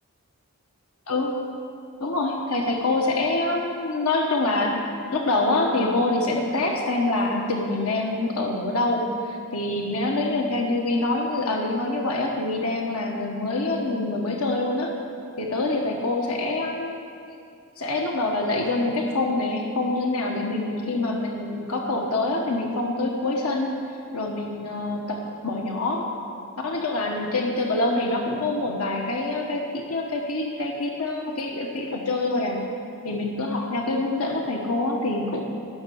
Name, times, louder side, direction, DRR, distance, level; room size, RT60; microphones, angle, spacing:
voice 1, 1.1-1.4 2.0-4.8 5.1-14.9 15.4-17.0 17.8-23.7 24.1-26.1 26.6-32.6 33.0-35.4, left 2 dB, 90° left, 1 dB, 1.4 m, -25 dB
12.5 x 7.5 x 9.9 m, 2.5 s
head